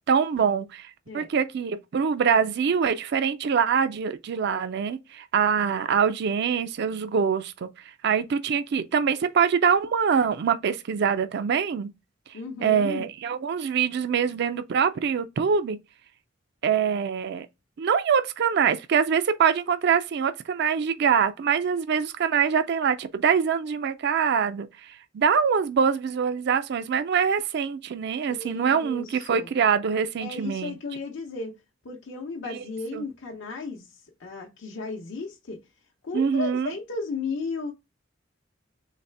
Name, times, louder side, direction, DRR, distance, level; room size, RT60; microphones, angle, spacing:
voice 1, 0.1-7.7 8.0-11.9 12.6-15.8 16.6-17.5 17.8-30.8 32.5-32.6 32.9-33.0 36.1-36.7, right 6 dB, 60° right, 0.4 m, -24 dB
voice 2, 12.3-13.1 28.3-29.5 30.2-31.5 31.8-35.6 36.0-37.7, left 4 dB, 70° left, 0.8 m, -35 dB
4.1 x 3.2 x 3.3 m
head